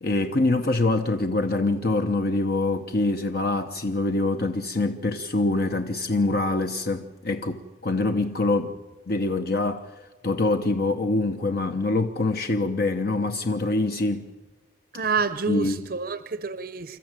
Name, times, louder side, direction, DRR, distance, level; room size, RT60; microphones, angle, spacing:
voice 1, 0.0-8.8 9.1-9.9 10.2-14.3 15.5-15.9, left 2 dB, 50° left, 0.9 m, -25 dB
voice 2, 14.9-17.0, right 5 dB, 50° right, 0.7 m, -28 dB
26.5 x 14.0 x 9.0 m
head